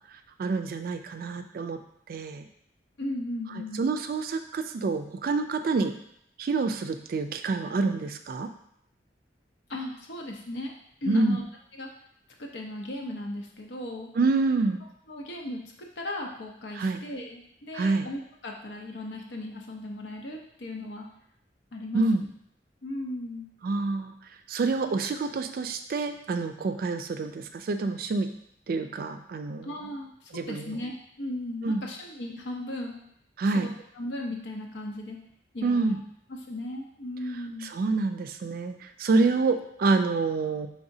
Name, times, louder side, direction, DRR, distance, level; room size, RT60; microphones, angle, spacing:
voice 1, 0.1-1.8 2.1-2.4 3.8-5.9 6.4-8.5 11.1-11.4 14.1-14.8 16.7-17.0 17.7-18.1 21.9-22.2 23.6-24.1 24.5-28.3 28.7-29.7 30.3-30.8 31.6-31.8 33.4-33.7 35.6-36.0 37.6-40.7, right 3 dB, 55° right, 7 dB, 0.3 m, -27 dB
voice 2, 3.0-3.9 9.7-10.7 11.0-11.4 11.8-11.9 12.4-14.1 15.1-21.1 21.7-22.3 22.8-23.5 29.6-33.0 33.4-33.7 34.0-35.2 35.5-36.0 36.5-37.7, left 1 dB, 80° left, 1 dB, 0.7 m, -36 dB
4.8 x 3.4 x 2.7 m, 0.71 s
head